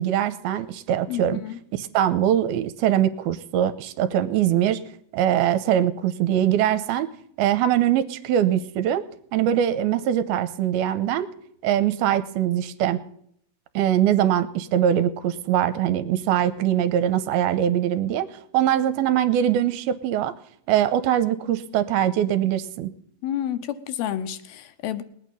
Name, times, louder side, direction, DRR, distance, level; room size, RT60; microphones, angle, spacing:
voice 1, 0.0-1.4 1.7-4.8 5.1-7.1 7.4-9.1 9.3-11.3 11.6-13.0 13.8-20.3 20.7-22.9, right 11 dB, 80° right, 12 dB, 2.6 m, -22 dB
voice 2, 1.1-1.6 23.2-25.0, left 11 dB, 80° left, 10 dB, 2.6 m, -30 dB
20.0 x 9.1 x 5.5 m, 0.67 s
omnidirectional pair, 4.5 m